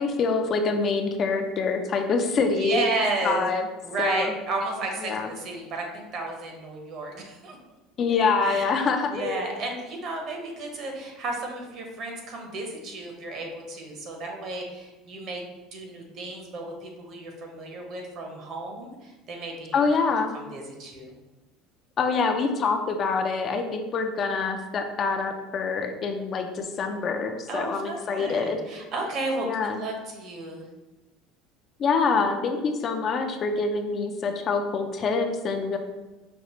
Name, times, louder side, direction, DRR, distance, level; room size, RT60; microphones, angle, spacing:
voice 1, 0.0-2.8 3.2-3.7 4.0-4.3 5.0-5.3 8.0-9.4 19.7-20.3 22.0-28.6 29.4-29.8 31.8-35.8, left 4 dB, 35° left, 5 dB, 0.4 m, -25 dB
voice 2, 2.4-3.5 3.8-7.6 8.4-8.8 9.1-15.4 15.7-19.8 20.3-21.2 27.5-30.7, right 2 dB, 50° right, 2 dB, 0.9 m, -33 dB
5.3 x 2.4 x 3.0 m, 1.1 s
cardioid pair, 135°, 0 cm